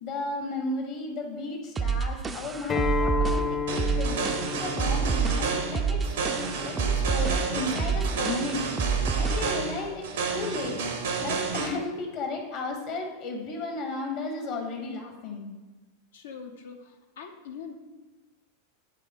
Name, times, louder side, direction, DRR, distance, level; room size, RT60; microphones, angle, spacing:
voice 1, 0.0-8.8 9.2-10.8 11.2-15.5, left 2 dB, 55° left, 2 dB, 1.4 m, -34 dB
sound 1, 1.8-9.6, right 6 dB, 25° right, 0.4 m, -28 dB
Acoustic guitar, 2.7-7.9, left 5 dB, 25° left, 0.6 m, -33 dB
sound 2, 3.7-11.7, right 4 dB, 75° right, 0.8 m, -31 dB
voice 2, 16.1-17.7, left 6 dB, 75° left, 4 dB, 0.8 m, -43 dB
9.1 x 3.5 x 3.6 m, 1.2 s
hypercardioid pair, 100°, 0 cm